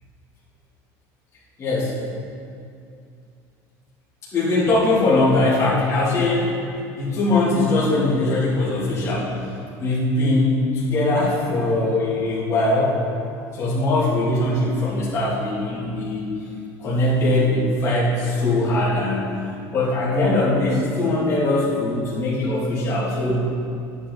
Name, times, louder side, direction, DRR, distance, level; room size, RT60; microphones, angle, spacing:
voice 1, 1.6-2.0 4.3-6.6 6.9-9.3 9.8-13.0 13.5-16.3 16.8-19.3 19.7-23.4, left 2 dB, 30° left, -8 dB, 2.7 m, -21 dB
11.0 x 8.4 x 4.0 m, 2.5 s
cardioid pair, 140°, 9 cm